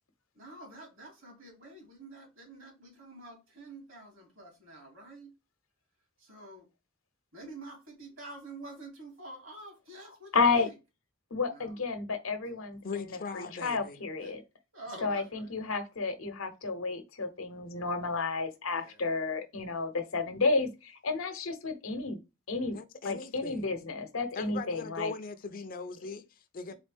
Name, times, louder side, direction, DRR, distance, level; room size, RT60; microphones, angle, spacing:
voice 1, 0.3-5.3 6.2-6.7 7.3-10.7 11.5-11.8 14.2-14.3 14.7-15.7 18.7-19.0 26.7-26.8, right 2 dB, 70° right, 2.5 m, -48 dB
voice 2, 10.3-10.7 11.3-14.4 15.0-22.2 22.5-22.8 23.0-25.1, left 4 dB, 90° left, 0.9 m, -31 dB
voice 3, 12.8-14.0 22.7-23.7 24.3-26.7, left 4 dB, 45° left, 0.5 m, -40 dB
4.1 x 3.7 x 3.4 m
head